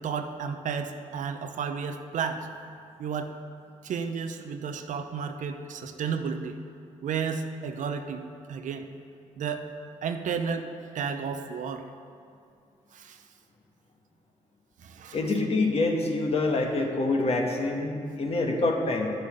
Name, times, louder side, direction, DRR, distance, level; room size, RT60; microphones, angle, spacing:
voice 1, 0.0-2.5 3.0-3.3 3.8-6.6 7.0-8.9 9.4-9.7 10.0-10.7 10.9-11.9 12.9-13.2 14.8-15.2, right 6 dB, 65° right, 7 dB, 0.7 m, -32 dB
voice 2, 15.1-19.1, left 2 dB, 45° left, 1 dB, 1.5 m, -26 dB
10.0 x 6.8 x 5.1 m, 2.4 s
supercardioid pair, 60°, 14 cm